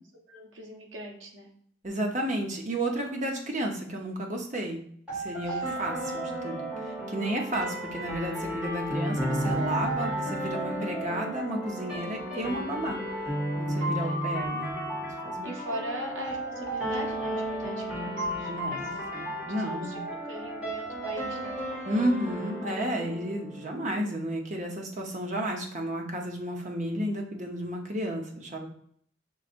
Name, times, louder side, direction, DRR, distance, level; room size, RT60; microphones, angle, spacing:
voice 1, 0.3-1.5 5.5-5.9 7.6-7.7 13.7-14.2 15.4-19.1 19.4-21.6, equal, 80° right, 0 dB, 1.2 m, -40 dB
voice 2, 1.8-4.8 5.1-13.0 13.6-14.8 15.2-15.5 18.5-20.0 21.8-28.7, right 1 dB, 40° right, 1 dB, 0.9 m, -32 dB
sound 1, 5.1-24.0, right 1 dB, 5° right, 1.8 m, -33 dB
6.4 x 3.2 x 2.6 m, 0.63 s
head